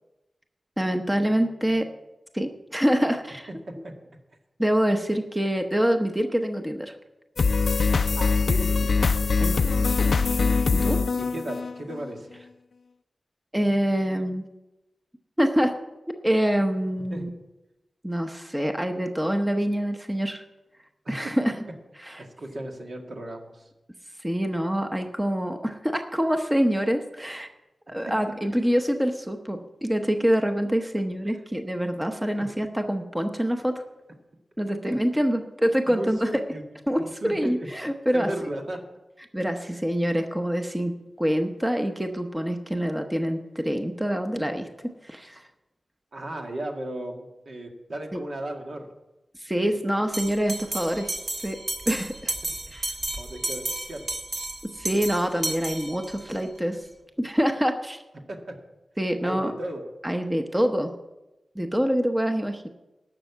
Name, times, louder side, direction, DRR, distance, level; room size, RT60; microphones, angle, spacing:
voice 1, 0.8-1.9 2.3-3.5 4.6-6.9 9.4-10.0 10.3-10.4 10.7-11.0 13.5-14.4 15.4-15.8 16.2-17.3 18.0-20.4 21.1-21.5 22.0-22.2 24.2-27.5 27.9-33.8 34.6-36.3 36.9-38.3 39.3-44.7 45.0-45.4 48.1-48.2 49.4-51.1 51.4-51.6 51.9-52.3 52.7-52.9 54.6-56.9 57.2-58.0 59.0-59.5 60.0-60.9 61.6-62.7, equal, 10° right, 5 dB, 0.8 m, -25 dB
sound 1, 7.4-12.1, left 4 dB, 65° left, 0.4 m, -23 dB
voice 2, 8.2-9.2 11.2-12.3 17.1-17.3 21.0-21.3 22.2-23.7 28.1-28.2 32.4-32.5 35.9-36.6 37.0-37.7 38.1-38.8 46.1-48.9 52.4-52.5 53.2-54.1 58.3-58.5 59.2-59.8, right 1 dB, 65° right, 2 dB, 1.9 m, -35 dB
Bell, 50.1-56.4, right 2 dB, 50° right, 1.5 m, -33 dB
11.5 x 6.6 x 8.3 m, 1.0 s
wide cardioid pair, 100°, 0 cm